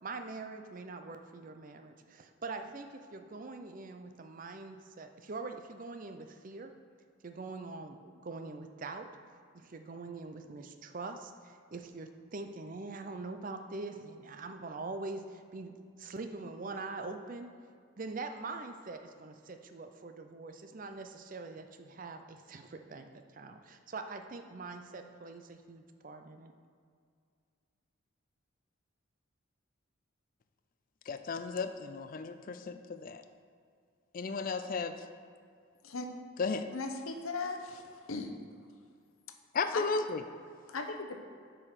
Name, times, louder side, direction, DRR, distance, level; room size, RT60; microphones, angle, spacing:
voice 1, 0.0-6.7 7.2-9.1 9.5-17.5 18.0-26.5, right 3 dB, 40° right, 7 dB, 0.5 m, -43 dB
voice 2, 31.1-33.2 34.1-34.9 36.4-36.7 39.5-40.2, left 4 dB, 40° left, 9 dB, 0.4 m, -34 dB
voice 3, 36.7-38.3 39.7-39.8 40.7-41.2, left 3 dB, 80° left, 5 dB, 0.8 m, -38 dB
7.7 x 4.9 x 5.8 m, 2.2 s
head